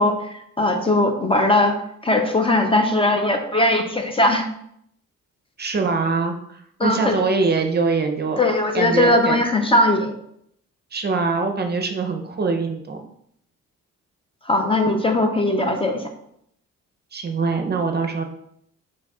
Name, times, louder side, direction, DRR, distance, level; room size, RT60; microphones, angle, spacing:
voice 1, 0.0-1.8 2.0-4.5 6.8-7.2 8.4-10.1 14.5-16.0, left 1 dB, 20° left, 4 dB, 0.5 m, -19 dB
voice 2, 5.6-8.4 8.7-9.4 10.9-13.0 17.1-18.2, right 4 dB, 35° right, 5 dB, 0.6 m, -23 dB
4.6 x 4.5 x 2.4 m, 0.71 s
cardioid pair, 90°, 30 cm